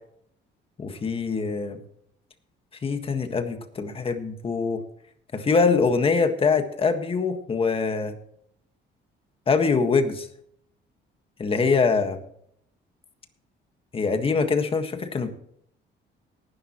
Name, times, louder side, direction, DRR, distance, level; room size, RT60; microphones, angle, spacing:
voice 1, 0.8-1.8 2.8-4.8 5.3-8.1 9.5-10.3 11.4-12.2 13.9-15.3, left 4 dB, 30° left, 7 dB, 1.6 m, -23 dB
18.5 x 11.0 x 3.1 m, 0.69 s
cardioid pair, 145°, 20 cm